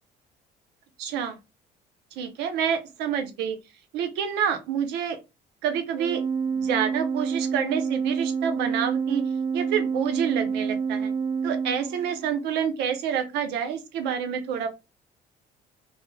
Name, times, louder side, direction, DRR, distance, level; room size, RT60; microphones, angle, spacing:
voice 1, 1.0-1.4 2.2-3.6 3.9-5.2 5.6-6.2 6.5-9.2 9.5-11.1 11.4-14.7, right 8 dB, 85° right, 7 dB, 0.6 m, -28 dB
Organ, 5.9-12.5, right 6 dB, 25° right, 0.4 m, -28 dB
2.1 x 2.0 x 3.1 m, 0.25 s
cardioid pair, 110°, 17 cm